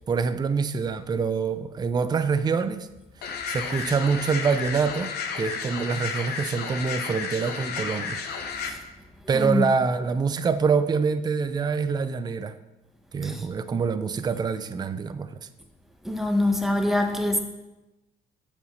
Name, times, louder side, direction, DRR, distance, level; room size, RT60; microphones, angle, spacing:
voice 1, 0.1-2.9 3.5-8.2 9.3-12.6 13.1-15.4, right 5 dB, 25° right, 11 dB, 0.5 m, -25 dB
sound 1, 3.2-8.7, left 5 dB, 75° left, 1.0 m, -32 dB
voice 2, 9.3-9.7 13.2-13.4 16.0-17.4, left 1 dB, ahead, 3 dB, 1.1 m, -24 dB
8.1 x 5.1 x 6.4 m, 1.0 s
cardioid pair, 110°, 17 cm